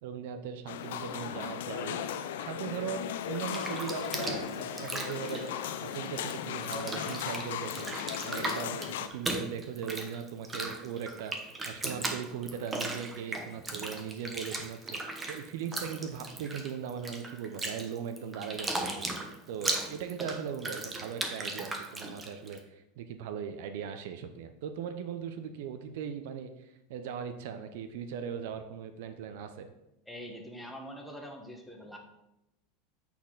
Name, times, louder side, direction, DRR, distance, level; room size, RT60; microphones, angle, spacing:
voice 1, 0.0-2.0 2.4-11.3 11.6-29.7, right 7 dB, 75° right, 8 dB, 0.6 m, -39 dB
sound 1, 0.7-9.1, left 9 dB, 85° left, 0.5 m, -36 dB
Bathtub (filling or washing), 3.3-6.3 6.6-22.6, right 2 dB, 20° right, 0.9 m, -37 dB
voice 2, 30.1-32.0, equal, 5° left, 1 dB, 1.2 m, -44 dB
8.2 x 4.3 x 3.9 m, 0.89 s
supercardioid pair, 120°, 0 cm